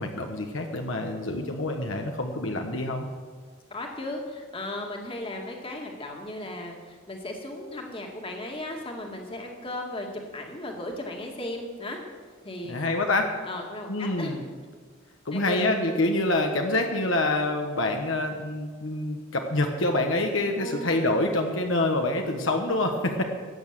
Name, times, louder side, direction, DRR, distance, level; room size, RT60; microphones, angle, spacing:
voice 1, 0.0-3.1 12.6-13.3 13.9-14.4 15.2-23.2, left 2 dB, 70° left, 3 dB, 1.3 m, -26 dB
voice 2, 3.7-10.1 10.3-12.0 12.4-13.0 13.4-14.5 15.3-15.6 20.6-20.9, left 1 dB, 25° left, 1 dB, 2.0 m, -36 dB
14.5 x 8.9 x 7.6 m, 1.5 s
head